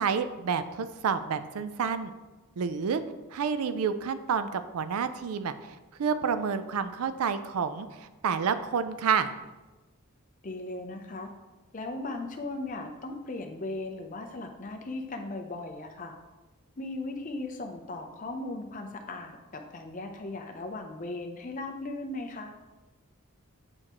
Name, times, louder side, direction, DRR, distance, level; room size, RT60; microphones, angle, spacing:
voice 1, 0.0-2.1 2.6-3.0 3.3-5.5 6.0-9.3, right 6 dB, 80° right, 11 dB, 0.4 m, -29 dB
voice 2, 10.4-11.3 11.7-16.2 16.8-22.5, left 2 dB, 35° left, 4 dB, 0.6 m, -37 dB
8.6 x 4.5 x 3.0 m, 1.2 s
head